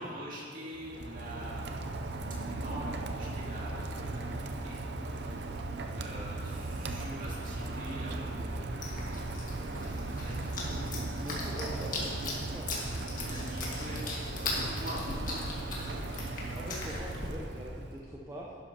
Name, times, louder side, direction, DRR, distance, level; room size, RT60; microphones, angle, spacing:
voice 1, 0.0-1.8 2.4-4.8 5.0-9.3 10.0-11.1 13.1-14.1 14.4-15.5, equal, 45° right, -6 dB, 2.7 m, -44 dB
Rain, 0.7-18.0, right 2 dB, 60° right, 0.6 m, -37 dB
sound 1, 8.8-17.3, left 2 dB, 45° left, 1.8 m, -39 dB
voice 2, 11.2-12.8 15.9-18.6, equal, 15° right, -4 dB, 0.8 m, -44 dB
12.0 x 10.0 x 2.9 m, 2.4 s
head